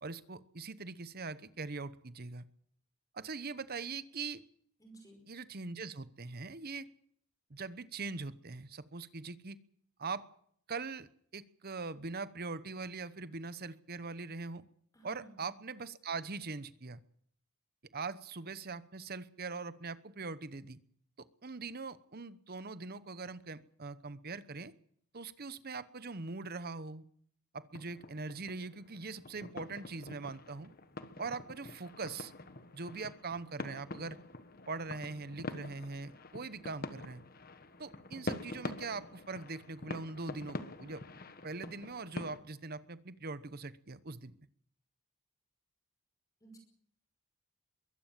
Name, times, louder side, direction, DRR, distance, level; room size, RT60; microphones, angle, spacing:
voice 1, 0.0-2.4 3.1-4.4 5.3-6.9 7.5-9.6 10.0-10.2 10.7-11.1 11.3-14.6 15.0-17.0 17.9-20.8 21.4-24.7 25.1-27.0 27.5-30.7 31.2-32.3 32.7-34.2 34.7-37.2 37.8-41.0 41.4-44.3, right 4 dB, 45° right, 15 dB, 1.0 m, -42 dB
voice 2, 4.8-5.2 14.9-15.5 46.4-46.6, right 2 dB, 15° left, 4 dB, 5.3 m, -55 dB
sound 1, 27.7-42.4, left 2 dB, 40° left, 1.3 m, -46 dB
22.5 x 16.5 x 7.5 m, 0.64 s
head